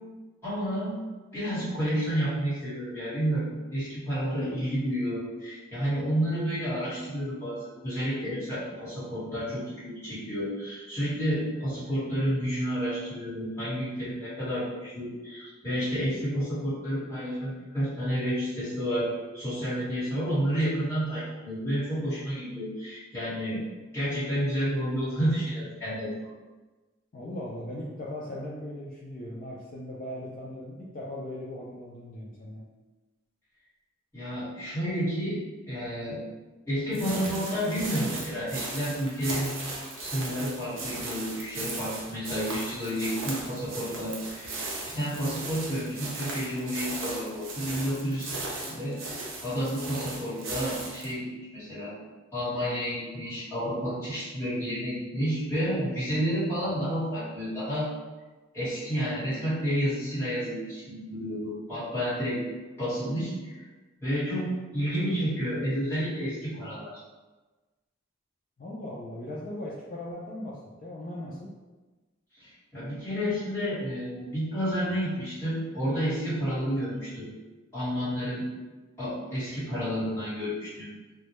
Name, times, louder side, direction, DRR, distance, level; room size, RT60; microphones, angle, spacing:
voice 1, 0.4-1.0 1.3-23.6 23.9-26.1 34.1-36.2 36.7-39.5 40.0-49.0 49.4-51.3 51.5-51.9 52.3-57.9 58.5-62.4 62.8-63.6 64.0-66.9 72.4-77.3 77.7-78.4 79.0-80.9, equal, 15° left, -13 dB, 1.2 m, -30 dB
voice 2, 27.1-32.6 68.6-71.5, left 1 dB, 45° left, -6 dB, 0.3 m, -38 dB
sound 1, 36.9-51.1, right 2 dB, 80° right, 0.5 m, -37 dB
2.2 x 2.1 x 2.9 m, 1.2 s
head